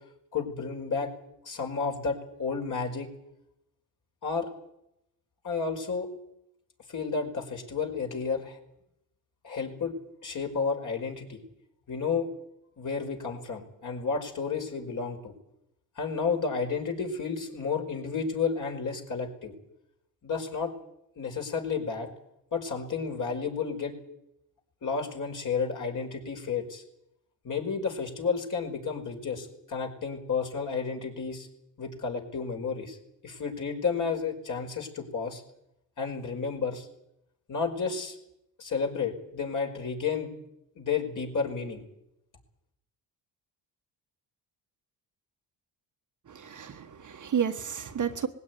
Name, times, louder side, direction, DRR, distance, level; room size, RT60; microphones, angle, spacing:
voice 1, 0.3-1.1 1.4-3.1 4.2-4.5 5.4-6.1 6.9-8.6 9.4-9.9 10.2-11.4 11.9-12.3 12.8-15.3 16.0-19.5 20.2-20.7 21.2-22.1 22.5-24.0 24.8-26.8 27.4-31.5 31.8-33.0 33.2-35.4 36.0-36.9 37.5-38.2 38.6-40.3 40.8-41.8, left 5 dB, 45° left, 2 dB, 5.2 m, -31 dB
voice 2, 46.3-48.3, right 8 dB, 45° right, 6 dB, 1.5 m, -31 dB
20.0 x 16.5 x 9.5 m, 0.81 s
cardioid pair, 105°, 44 cm